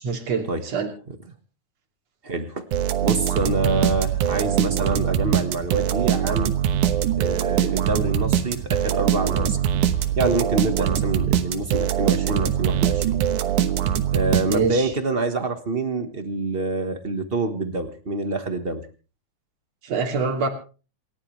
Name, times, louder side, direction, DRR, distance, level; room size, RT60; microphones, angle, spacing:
voice 1, 0.0-0.9 10.8-10.9 14.5-14.9 19.8-20.5, right 5 dB, 60° right, 2 dB, 3.8 m, -25 dB
voice 2, 2.2-2.6 3.0-6.5 7.2-9.6 10.1-13.2 14.1-18.8, right 2 dB, 40° right, 8 dB, 0.8 m, -26 dB
sound 1, 2.7-14.9, right 10 dB, 85° right, 2.7 m, -22 dB
28.0 x 12.5 x 3.3 m, 0.36 s
omnidirectional pair, 3.4 m